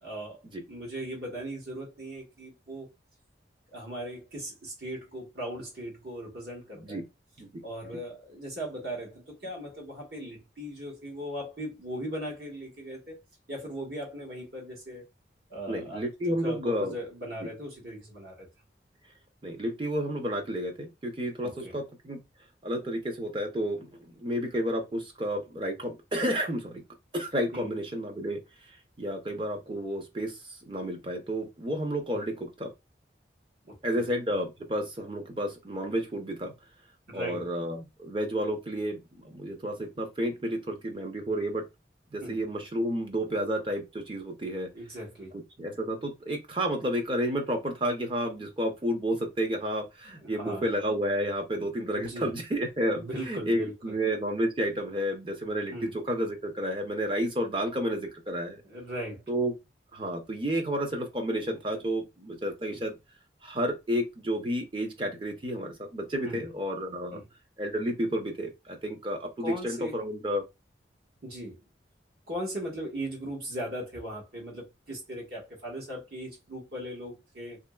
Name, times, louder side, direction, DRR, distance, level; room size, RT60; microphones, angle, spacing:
voice 1, 0.0-0.4 0.7-2.9 3.7-7.0 7.6-13.2 13.5-15.0 15.5-16.0 16.4-18.5 21.4-21.8 27.5-27.7 32.1-32.2 33.7-34.1 37.1-37.4 42.2-42.4 44.7-45.3 50.1-50.6 51.9-52.3 52.9-53.9 55.7-55.9 58.6-59.2 62.7-62.8 66.3-66.4 67.1-67.2 69.4-69.9 71.2-71.6 72.3-77.6, equal, 60° right, 1.3 m, -38 dB
voice 2, 15.7-16.9 17.4-17.5 19.4-22.2 22.6-26.8 27.1-28.4 29.0-32.7 33.8-36.5 37.1-41.6 42.1-44.7 45.3-58.6 59.3-59.5 59.9-63.0 63.4-67.2 67.6-70.4, equal, 30° right, 0.6 m, -31 dB
2.8 x 2.7 x 2.3 m
head